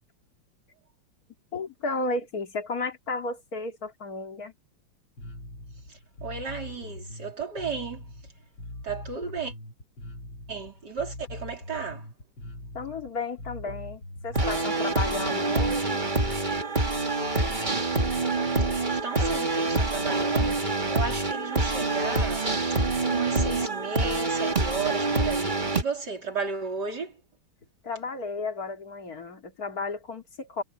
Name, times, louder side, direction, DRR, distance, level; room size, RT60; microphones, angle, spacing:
voice 1, 1.5-4.5 12.7-16.1 27.8-30.6, left 3 dB, 50° left, 3.0 m, -33 dB
Bass guitar, 5.2-14.6, left 1 dB, 75° left, 5.6 m, -42 dB
voice 2, 5.9-8.0 8.8-9.5 10.5-12.1 18.9-22.4 22.7-22.8 23.1-27.1, right 5 dB, 55° right, 4.3 m, -34 dB
sound 1, 14.3-25.8, right 2 dB, 25° right, 2.4 m, -26 dB
omnidirectional pair, 2.1 m